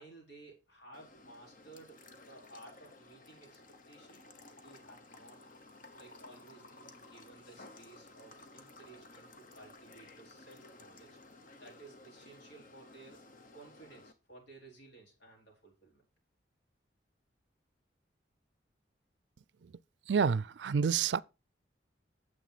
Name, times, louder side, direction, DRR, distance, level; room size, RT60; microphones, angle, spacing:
voice 1, 0.0-2.0 2.3-3.6 3.9-4.2 4.5-5.4 5.9-11.2 11.6-16.0, right 2 dB, 70° left, 4.3 m, -56 dB
sound 1, 0.9-14.1, left 2 dB, 50° left, 1.1 m, -55 dB
voice 2, 20.1-21.2, right 6 dB, 75° right, 0.4 m, -29 dB
9.2 x 7.5 x 4.1 m
head